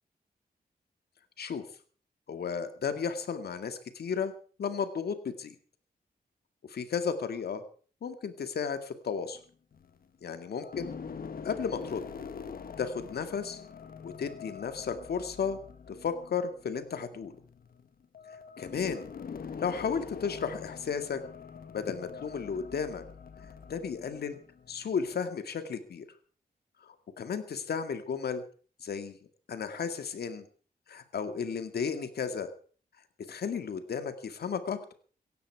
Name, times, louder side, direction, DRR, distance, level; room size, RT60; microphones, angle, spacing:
voice 1, 2.3-4.3 4.6-5.6 6.7-7.6 8.0-9.4 10.2-10.9 11.4-12.0 12.8-13.6 14.0-15.6 15.9-17.4 18.6-19.1 19.6-21.2 21.7-23.0 23.7-24.4 24.7-26.1 26.8-28.4 28.8-29.2 29.5-30.5 30.9-32.5 33.3-34.9, left 6 dB, 90° left, 9 dB, 2.1 m, -34 dB
sound 1, 9.3-10.1 10.6-25.2, left 6 dB, 65° left, 1.4 m, -45 dB
18.0 x 15.0 x 4.7 m, 0.42 s
wide cardioid pair, 110°, 16 cm